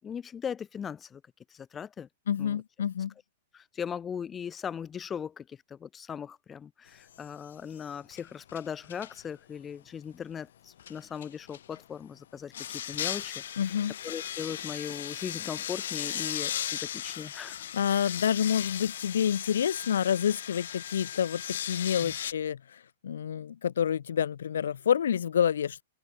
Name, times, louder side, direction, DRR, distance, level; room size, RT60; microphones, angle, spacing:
voice 1, 0.0-1.2 1.5-2.1 2.4-2.6 3.5-13.4 14.0-17.6 22.0-22.1, left 7 dB, 10° left, 5.9 m, -39 dB
voice 2, 2.3-3.1 13.6-13.9 17.7-25.8, left 8 dB, 90° left, 6.8 m, -28 dB
sound 1, 7.1-7.5 7.8-9.2 10.8-11.8 12.5-22.3, left 10 dB, 60° left, 6.7 m, -37 dB
open air
hypercardioid pair, 175°, 0 cm